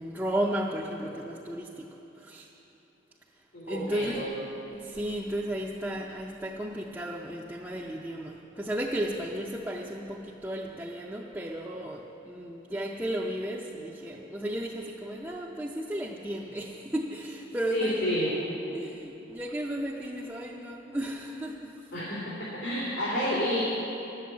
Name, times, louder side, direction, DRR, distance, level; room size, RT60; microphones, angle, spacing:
voice 1, 0.0-2.5 3.7-4.3 4.7-18.1 18.7-21.7, right 1 dB, 10° right, -4 dB, 0.6 m, -34 dB
voice 2, 3.5-4.2 17.7-18.3 21.9-22.3 22.6-23.6, equal, 80° left, -9 dB, 3.0 m, -29 dB
12.0 x 7.8 x 8.3 m, 3.0 s
head